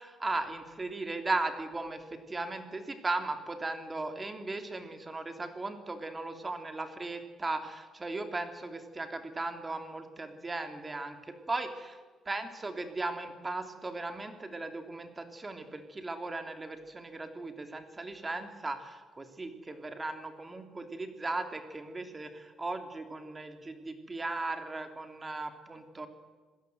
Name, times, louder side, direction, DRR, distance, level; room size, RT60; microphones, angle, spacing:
voice 1, 0.0-11.9 12.3-26.1, right 2 dB, 25° right, 6 dB, 2.9 m, -37 dB
26.5 x 16.5 x 7.9 m, 1.4 s
cardioid pair, 90°, 0 cm